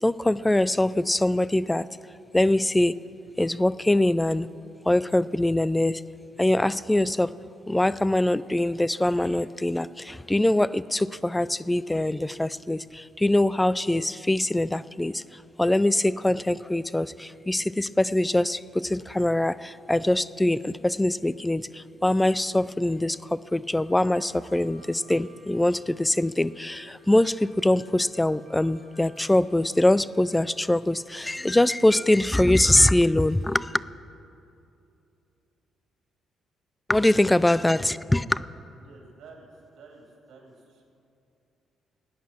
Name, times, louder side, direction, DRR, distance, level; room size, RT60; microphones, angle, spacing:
voice 1, 0.0-1.9 2.3-3.0 3.4-4.5 4.8-6.0 6.4-7.3 7.7-15.2 15.6-33.8 36.9-38.4, left 1 dB, 10° left, 18 dB, 0.3 m, -23 dB
sound 1, 23.8-33.3, right 3 dB, 60° left, 2.8 m, -60 dB
sound 2, 29.1-29.5 31.2-31.5 33.2-33.6, left 3 dB, 80° left, 2.1 m, -59 dB
voice 2, 37.0-37.4 38.8-39.5 39.7-40.8, right 4 dB, 70° right, -1 dB, 3.3 m, -50 dB
17.0 x 9.5 x 6.1 m, 2.7 s
cardioid pair, 90°, 0 cm